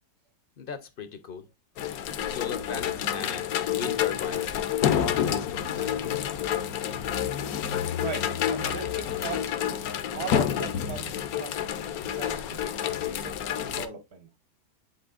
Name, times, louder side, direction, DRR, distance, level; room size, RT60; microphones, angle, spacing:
voice 1, 0.6-1.5 2.2-4.5 5.0-6.0, left 6 dB, 50° left, 0.7 m, -37 dB
sound 1, 1.8-13.9, left 9 dB, 70° left, 1.1 m, -29 dB
voice 2, 7.9-11.6 12.1-12.8 13.0-14.3, right 5 dB, 65° right, 1.7 m, -39 dB
10.5 x 4.1 x 2.4 m
omnidirectional pair, 1.7 m